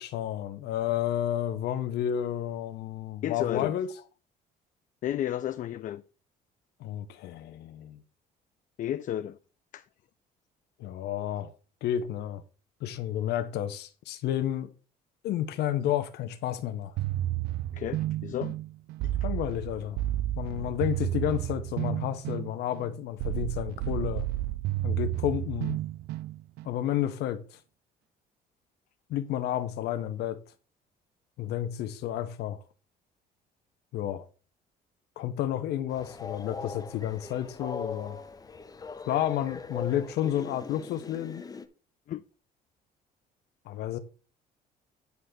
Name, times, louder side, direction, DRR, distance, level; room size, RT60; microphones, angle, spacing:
voice 1, 0.0-3.9 6.8-8.0 10.8-11.5 11.8-12.4 12.8-14.7 15.2-16.9 19.2-20.0 20.4-24.2 24.8-25.8 26.6-27.6 29.1-30.4 31.4-32.6 33.9-34.3 35.2-38.2 39.1-41.4 43.7-44.0, left 11 dB, 75° left, 0.8 m, -31 dB
voice 2, 3.2-3.7 5.0-6.0 8.8-9.4 9.7-9.8 17.7-18.6 42.1-42.2, left 11 dB, 50° left, 0.4 m, -32 dB
sound 1, 17.0-26.8, right 14 dB, 80° right, 0.4 m, -32 dB
Train, 35.9-41.7, left 4 dB, 20° left, 0.8 m, -40 dB
9.5 x 3.4 x 6.5 m
cardioid pair, 110°, 17 cm